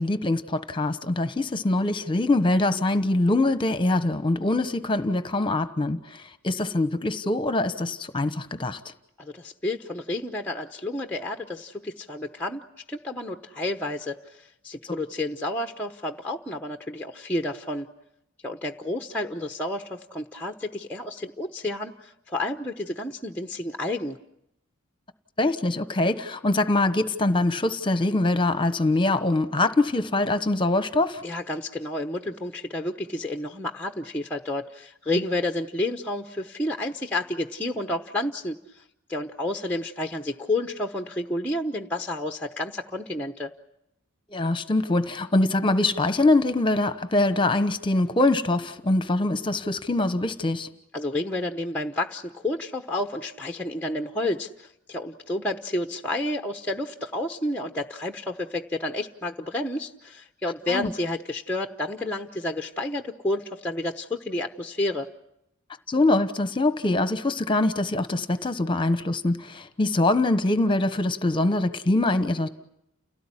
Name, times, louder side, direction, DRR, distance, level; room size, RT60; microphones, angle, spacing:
voice 1, 0.0-8.8 14.8-14.9 25.4-31.2 44.3-50.7 60.7-60.9 65.9-72.5, left 2 dB, 20° left, 1.2 m, -23 dB
voice 2, 9.2-12.6 12.9-17.9 18.4-24.2 31.2-38.8 39.1-43.5 50.9-65.1, left 1 dB, 5° left, 1.0 m, -30 dB
30.0 x 17.5 x 10.0 m
head